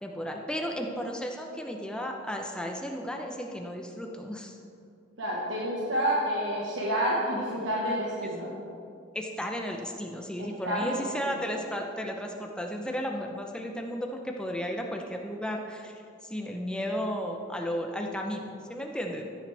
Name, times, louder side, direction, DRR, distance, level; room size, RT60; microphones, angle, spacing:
voice 1, 0.0-4.6 8.2-8.3 9.1-19.3, equal, 5° left, 1 dB, 0.8 m, -34 dB
voice 2, 5.2-8.5 10.4-11.0 11.2-11.4, equal, 70° right, -5 dB, 1.5 m, -29 dB
14.0 x 8.8 x 3.5 m, 2.4 s
head